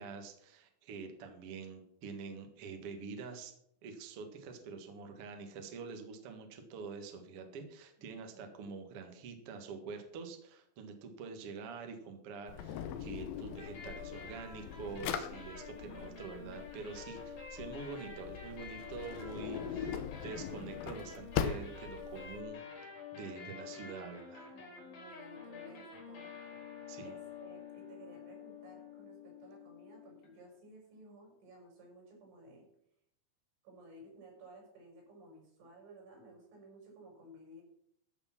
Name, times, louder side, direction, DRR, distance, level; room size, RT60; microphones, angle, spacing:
voice 1, 0.0-3.5 3.8-24.5 26.9-27.1, right 5 dB, 55° right, 5 dB, 1.6 m, -46 dB
voice 2, 8.0-8.8 23.6-24.0 24.5-26.3 27.0-32.7 33.6-37.6, right 1 dB, 90° right, 0 dB, 7.4 m, -56 dB
Drawer open or close, 12.5-22.4, left 8 dB, 80° left, 2.0 m, -41 dB
sound 1, 13.6-30.5, left 6 dB, 55° left, 5.2 m, -49 dB
13.5 x 6.9 x 5.9 m, 0.70 s
omnidirectional pair, 5.4 m